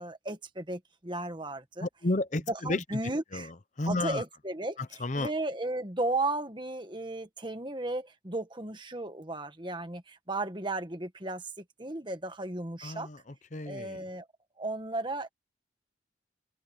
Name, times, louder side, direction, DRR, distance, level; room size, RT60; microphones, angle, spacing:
voice 1, 0.0-1.9 2.5-3.5 3.8-13.1 13.6-14.3 14.6-15.3, right 2 dB, 25° right, 1.6 m, -35 dB
voice 2, 1.8-4.2 5.0-5.3 12.8-13.2 13.5-14.0, left 2 dB, 40° left, 0.7 m, -32 dB
head